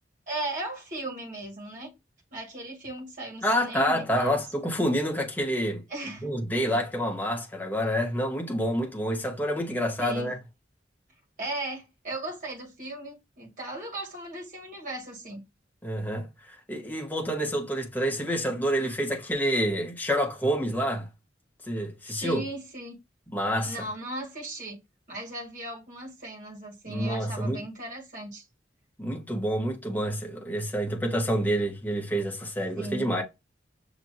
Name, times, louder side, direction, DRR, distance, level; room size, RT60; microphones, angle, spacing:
voice 1, 0.3-1.9 2.3-4.4 5.9-6.4 6.7-6.8 10.0-10.3 11.4-15.4 22.2-23.0 23.6-24.8 25.1-28.4 32.8-33.1, right 1 dB, 45° right, 2.1 m, -37 dB
voice 2, 3.4-5.8 6.2-10.4 15.8-16.3 16.7-21.1 21.7-22.4 23.3-23.8 26.9-27.6 29.0-33.2, equal, 10° left, 1.0 m, -28 dB
6.0 x 2.9 x 2.6 m
head